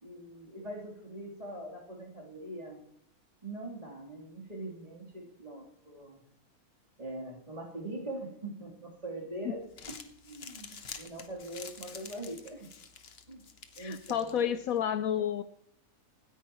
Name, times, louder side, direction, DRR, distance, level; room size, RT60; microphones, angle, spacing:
voice 1, 0.0-2.8 3.4-6.2 7.0-9.6 9.9-10.0 10.2-12.7 13.3-13.4 13.7-14.5, right 1 dB, 25° right, -3 dB, 3.3 m, -42 dB
Crumpling crinkling, 9.6-14.8, left 6 dB, 45° left, 1.2 m, -49 dB
voice 2, 13.8-15.4, left 9 dB, 70° left, 12 dB, 1.0 m, -31 dB
25.0 x 10.0 x 3.0 m, 0.73 s
omnidirectional pair, 1.6 m